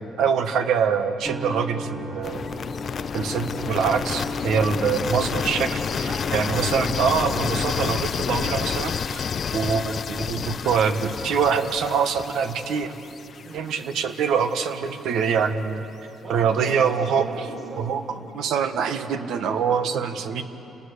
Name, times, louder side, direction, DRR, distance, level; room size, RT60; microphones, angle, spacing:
voice 1, 0.2-2.4 3.1-5.7 6.3-12.9 13.5-15.8 16.3-17.2 17.8-18.0 18.3-20.4, right 6 dB, 75° right, 8 dB, 1.4 m, -24 dB
sound 1, 1.2-17.2, left 1 dB, 20° right, 1.1 m, -38 dB
sound 2, 2.2-14.1, left 7 dB, 45° left, 0.4 m, -29 dB
voice 2, 5.4-6.7 7.3-7.5 9.5-9.7 13.4-13.7 16.2-18.2 19.2-19.4 19.9-20.1, right 2 dB, 50° right, -4 dB, 6.5 m, -41 dB
29.5 x 19.0 x 6.7 m, 3.0 s
cardioid pair, 125°, 0 cm